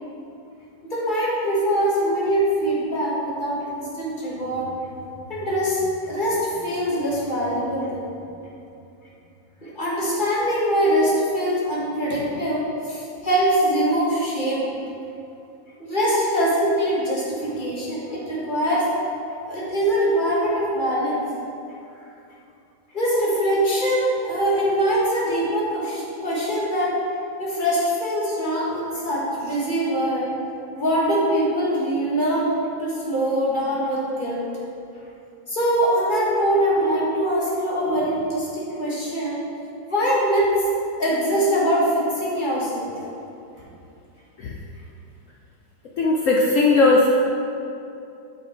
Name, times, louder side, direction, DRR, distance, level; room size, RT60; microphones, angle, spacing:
voice 1, 0.9-4.7 5.3-5.8 6.1-8.0 9.6-14.7 15.8-18.9 19.5-21.3 22.9-27.0 27.4-30.3 30.8-32.5 32.8-34.4 35.5-39.4 39.9-40.5 41.0-42.9, equal, 25° left, -6 dB, 1.8 m, -23 dB
voice 2, 46.0-47.1, left 3 dB, 65° left, -2 dB, 0.7 m, -17 dB
9.3 x 5.7 x 4.5 m, 2.7 s
omnidirectional pair, 2.1 m